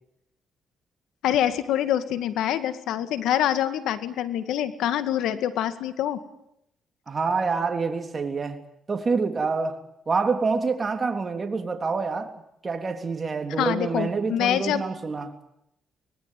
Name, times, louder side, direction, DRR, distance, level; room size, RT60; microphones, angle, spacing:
voice 1, 1.2-6.2 13.6-14.8, left 11 dB, 85° left, 2.1 m, -25 dB
voice 2, 7.1-8.6 8.9-15.3, right 4 dB, 35° right, 3.4 m, -27 dB
24.5 x 20.0 x 9.3 m
cardioid pair, 90°, 0 cm